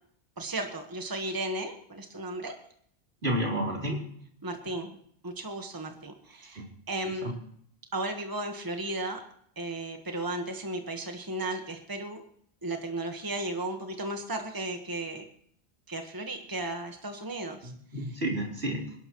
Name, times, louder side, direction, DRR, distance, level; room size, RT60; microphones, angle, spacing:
voice 1, 0.4-2.5 4.4-5.0 5.2-7.3 7.9-9.2 9.6-12.2 12.6-15.3 15.9-17.7, right 2 dB, 20° right, 4 dB, 1.4 m, -35 dB
voice 2, 3.2-4.0 6.5-6.7 7.2-7.3 17.6-18.9, right 1 dB, 70° right, -2 dB, 4.1 m, -31 dB
27.0 x 11.5 x 3.1 m, 0.66 s
omnidirectional pair, 1.1 m